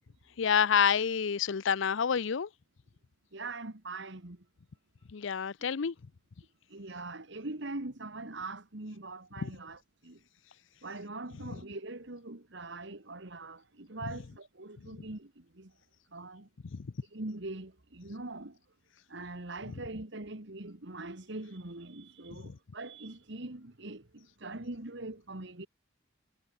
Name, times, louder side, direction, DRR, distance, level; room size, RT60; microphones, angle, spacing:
voice 1, 0.4-2.5 5.1-5.9 9.4-9.5 16.7-16.9, left 7 dB, 65° left, 0.5 m, -28 dB
voice 2, 3.3-4.4 6.7-10.2 10.8-15.7 16.1-16.5 17.1-18.6 19.1-25.7, right 2 dB, 60° right, 1.9 m, -42 dB
head